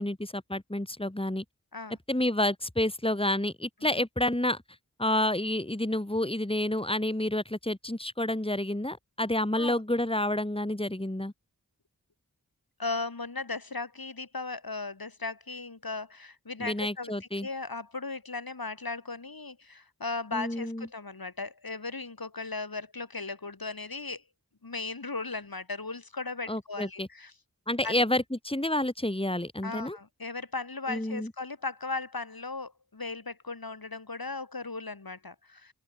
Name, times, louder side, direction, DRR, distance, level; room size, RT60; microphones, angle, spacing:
voice 1, 0.0-1.4 2.1-4.6 5.0-11.3 16.6-17.5 20.3-20.9 26.5-27.1 27.7-30.0 30.9-31.3, left 1 dB, 15° left, 3.6 m, -29 dB
voice 2, 12.8-17.1 17.4-24.2 24.6-27.3 27.8-28.0 29.6-35.7, left 3 dB, 75° left, 4.7 m, -37 dB
open air
wide cardioid pair, 55°, 36 cm